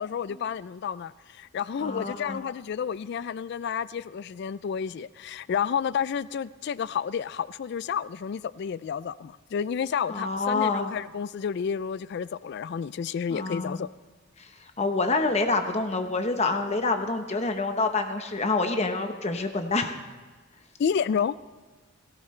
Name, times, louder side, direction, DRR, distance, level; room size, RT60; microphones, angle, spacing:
voice 1, 0.0-13.9 20.8-21.4, left 7 dB, 55° left, 0.3 m, -30 dB
voice 2, 1.8-2.4 10.1-10.9 13.3-13.8 14.4-14.5 14.8-20.0, left 3 dB, 30° left, 0.9 m, -27 dB
18.0 x 16.5 x 3.2 m
head